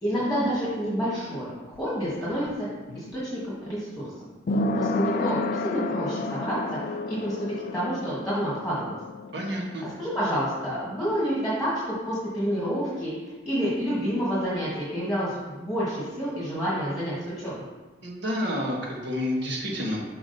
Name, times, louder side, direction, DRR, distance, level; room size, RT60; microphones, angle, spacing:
voice 1, 0.0-2.7 2.9-4.0 4.7-6.6 7.1-7.3 7.7-9.0 10.0-13.1 13.4-17.5, equal, ahead, -9 dB, 1.6 m, -28 dB
sound 1, 1.4-12.9 13.2-13.3, left 2 dB, 45° left, 0.3 m, -33 dB
voice 2, 9.3-9.9 18.0-20.0, left 1 dB, 65° right, -2 dB, 1.3 m, -29 dB
6.0 x 4.9 x 4.0 m, 1.2 s
head